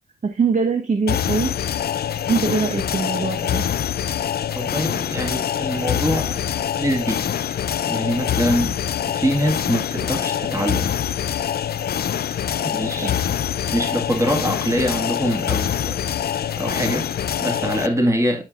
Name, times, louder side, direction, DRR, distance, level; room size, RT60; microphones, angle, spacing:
voice 1, 0.3-1.5 2.3-3.6 12.6-12.7 13.0-13.3, right 4 dB, 50° right, 1.5 m, -22 dB
sound 1, 1.1-17.9, left 9 dB, 85° left, 0.5 m, -25 dB
voice 2, 4.5-6.5 6.8-8.8 9.1-10.9 12.6-13.1 13.7-18.4, equal, 20° right, 2.1 m, -24 dB
11.0 x 5.7 x 2.5 m
cardioid pair, 80°, 16 cm